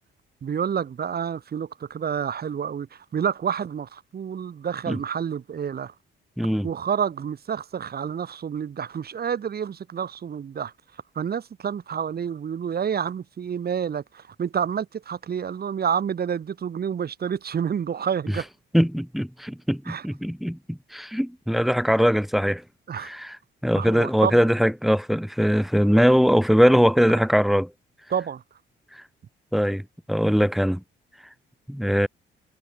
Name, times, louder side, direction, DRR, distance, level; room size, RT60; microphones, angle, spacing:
voice 1, 0.4-5.9 6.6-10.7 11.1-18.5 19.9-20.1 22.9-23.1 23.8-24.5 28.1-28.4, right 7 dB, 50° right, 4.0 m, -29 dB
voice 2, 6.4-6.7 18.7-22.6 23.0-23.4 23.6-27.7 28.9-29.0 29.5-30.8 31.7-32.1, equal, ahead, 2.2 m, -21 dB
cardioid pair, 90°, 20 cm